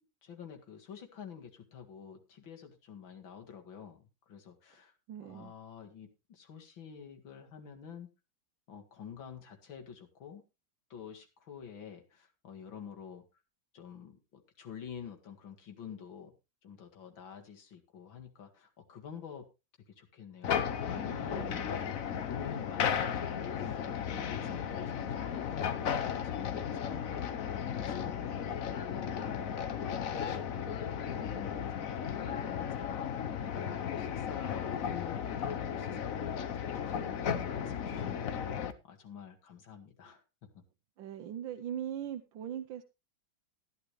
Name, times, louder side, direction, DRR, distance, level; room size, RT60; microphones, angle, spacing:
voice 1, 0.2-4.9 5.2-8.1 8.7-10.4 10.9-13.2 13.7-16.3 16.6-19.5 20.0-21.9 22.2-33.2 33.4-40.6, left 7 dB, 85° left, 4 dB, 2.7 m, -48 dB
voice 2, 5.1-5.5 21.3-21.7 41.0-42.8, right 10 dB, 80° right, 7 dB, 1.5 m, -40 dB
sound 1, 20.4-38.7, left 8 dB, 55° left, 1.1 m, -35 dB
14.0 x 11.0 x 3.1 m, 0.27 s
omnidirectional pair, 2.1 m